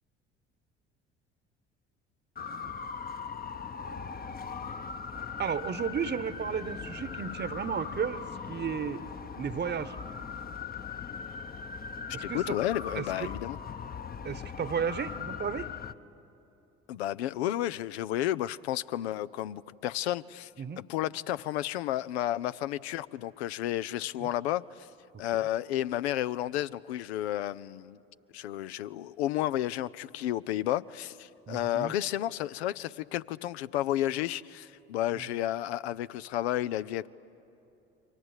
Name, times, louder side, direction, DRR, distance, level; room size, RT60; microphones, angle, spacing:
sound 1, 2.4-15.9, left 6 dB, 30° left, 0.9 m, -40 dB
voice 1, 5.4-8.2 8.5-9.0 9.4-10.0 12.1-12.4 12.9-13.3 14.2-15.8 20.6-20.8 24.2-24.3 31.5-31.9 35.1-35.3, right 7 dB, 30° right, 1.1 m, -33 dB
voice 2, 12.2-13.6 16.9-20.5 20.8-24.9 25.2-28.0 28.3-37.1, left 13 dB, 80° left, 0.6 m, -32 dB
29.5 x 24.0 x 8.1 m
hypercardioid pair, 55°, 32 cm